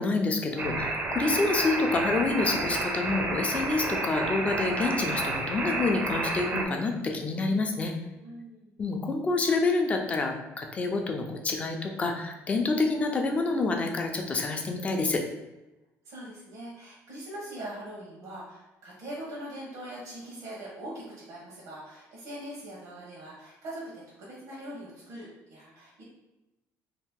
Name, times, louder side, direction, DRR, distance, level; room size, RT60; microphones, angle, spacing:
voice 1, 0.0-7.9 8.8-15.2, left 3 dB, 25° left, 3 dB, 0.4 m, -28 dB
sound 1, 0.6-6.6, right 2 dB, 30° right, 0.5 m, -30 dB
voice 2, 8.1-8.7 16.0-26.0, right 1 dB, 80° right, -5 dB, 1.0 m, -42 dB
2.8 x 2.4 x 3.6 m, 0.99 s
cardioid pair, 140°, 6 cm